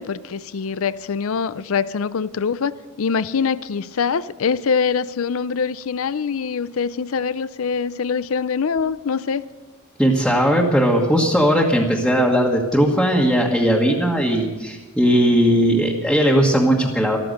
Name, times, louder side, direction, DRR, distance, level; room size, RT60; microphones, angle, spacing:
voice 1, 0.0-9.4, left 6 dB, 65° left, 0.5 m, -24 dB
voice 2, 10.0-17.2, equal, ahead, 1.4 m, -18 dB
14.5 x 13.5 x 6.5 m
head